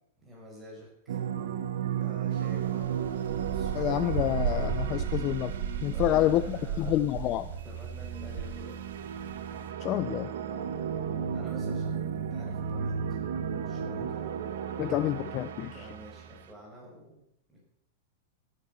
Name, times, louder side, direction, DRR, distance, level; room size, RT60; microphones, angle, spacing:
voice 1, 0.2-1.2 2.0-3.1 3.5-3.7 5.9-7.2 7.5-8.8 11.3-14.2 15.7-17.7, equal, 10° right, -3 dB, 5.6 m, -49 dB
sound 1, 1.1-6.9 7.3-16.5, right 8 dB, 70° right, 1.4 m, -34 dB
sound 2, 2.3-9.7, right 7 dB, 90° right, 2.2 m, -35 dB
voice 2, 3.7-5.5 5.8-7.5 9.8-10.3 14.8-15.7, left 14 dB, 35° left, 13 dB, 0.5 m, -28 dB
13.5 x 9.5 x 7.0 m, 0.75 s
supercardioid pair, 155°, 0 cm